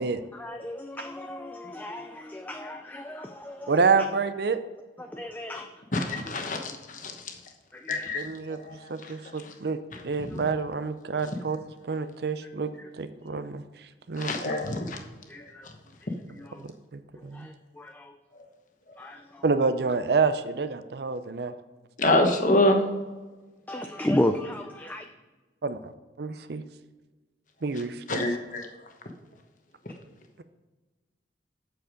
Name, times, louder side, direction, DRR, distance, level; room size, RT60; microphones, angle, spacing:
voice 1, 0.3-3.8 5.0-5.7 5.9-6.0 7.7-8.1 12.8-12.9 15.3-15.7 16.0-16.6 17.3-18.1 19.0-19.4 23.7-25.0, left 1 dB, 10° left, 5 dB, 0.3 m, -33 dB
voice 2, 3.7-4.6 7.9-9.8 10.0-12.7 13.0-13.6 14.1-14.5 16.6-17.5 19.4-21.5 25.6-25.9 26.2-26.6 27.6-28.3, right 4 dB, 60° right, 11 dB, 0.5 m, -28 dB
voice 3, 5.9-7.1 7.9-8.2 8.5-8.6 10.2-10.4 14.2-15.0 22.0-22.8 28.1-28.7, left 1 dB, 45° left, 4 dB, 1.1 m, -25 dB
7.9 x 6.9 x 5.1 m, 1.2 s
head